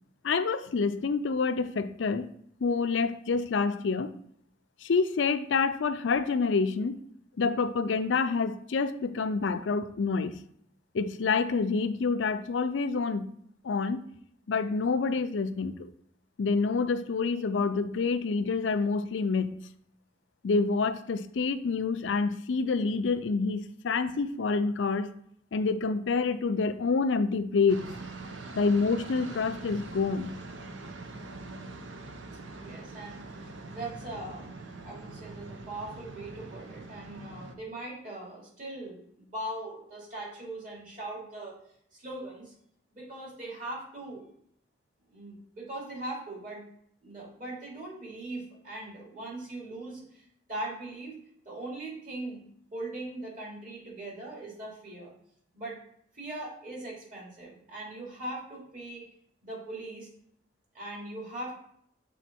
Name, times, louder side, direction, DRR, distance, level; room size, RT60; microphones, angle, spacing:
voice 1, 0.2-2.3 2.6-4.1 4.8-7.0 7.4-10.3 10.9-13.3 13.6-14.0 14.5-15.9 16.4-19.5 20.4-25.1 25.5-27.9 28.6-30.3, left 4 dB, 80° left, 0.5 m, -27 dB
sound 1, 27.7-37.5, right 2 dB, 85° right, 0.7 m, -43 dB
voice 2, 32.6-34.4 34.8-41.6 41.9-42.5 42.9-44.3 45.1-46.6 47.0-51.2 51.4-52.4 52.7-55.1 55.5-55.8 56.1-59.1 59.4-60.1 60.7-61.6, right 2 dB, 45° right, 2.6 m, -40 dB
7.2 x 3.8 x 4.3 m
head